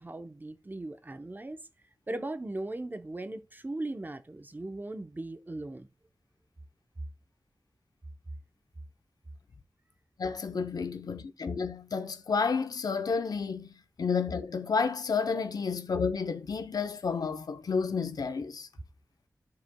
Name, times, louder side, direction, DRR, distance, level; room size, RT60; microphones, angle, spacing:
voice 1, 0.0-1.6 2.1-5.9 15.3-15.4, right 2 dB, 30° right, 0.8 m, -38 dB
voice 2, 10.2-13.7 14.0-18.7, left 5 dB, 90° left, 0.7 m, -31 dB
14.0 x 4.9 x 2.2 m
wide cardioid pair, 80°, 6 cm